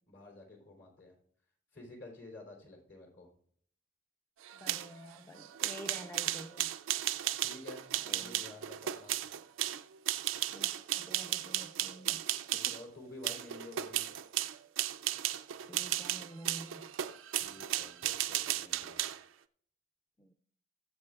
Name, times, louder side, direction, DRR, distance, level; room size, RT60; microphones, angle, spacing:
voice 1, 0.1-1.1 1.7-3.3 7.4-7.8 8.1-9.1 12.6-14.0 17.4-19.0, left 2 dB, 65° left, 0 dB, 3.4 m, -51 dB
sound 1, 4.4-12.8 13.2-19.2, right 13 dB, 85° right, 0.4 m, -35 dB
voice 2, 4.5-6.7 7.9-8.5 10.5-12.2 12.5-12.8 15.7-16.9 20.2-20.3, equal, 10° left, 4 dB, 0.5 m, -49 dB
21.0 x 7.6 x 2.4 m, 0.64 s
head